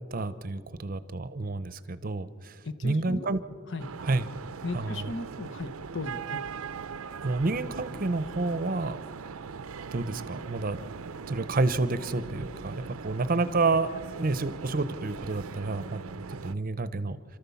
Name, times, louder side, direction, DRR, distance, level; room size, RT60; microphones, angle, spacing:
voice 1, 0.1-3.4 4.0-4.3 4.7-5.1 7.2-9.0 9.9-10.8 11.3-12.7 13.0-16.0 16.3-17.2, right 3 dB, 40° right, 14 dB, 0.7 m, -29 dB
voice 2, 2.6-3.3 3.7-3.9 4.6-6.4, left 2 dB, 60° left, 10 dB, 1.0 m, -36 dB
sound 1, 3.8-16.5, right 5 dB, 85° right, 0.6 m, -40 dB
28.0 x 13.5 x 7.1 m, 2.4 s
head